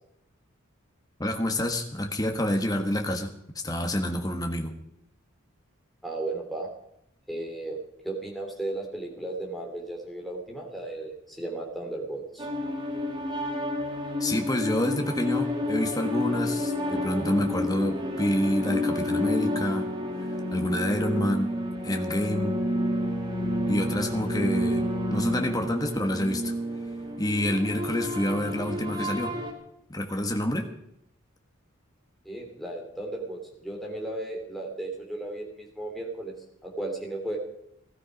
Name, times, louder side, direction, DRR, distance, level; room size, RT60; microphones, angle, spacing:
voice 1, 1.2-3.3 3.6-4.7 14.2-19.9 20.2-21.5 21.8-22.6 23.7-26.5 27.2-29.3 29.9-30.7, left 1 dB, 15° left, 4 dB, 1.3 m, -28 dB
voice 2, 6.0-6.7 7.3-7.8 8.0-12.5 32.2-36.3 36.6-37.4, right 2 dB, ahead, -1 dB, 2.9 m, -35 dB
sound 1, 12.4-29.5, left 1 dB, 20° right, 1.9 m, -30 dB
16.0 x 13.5 x 5.2 m, 0.78 s
head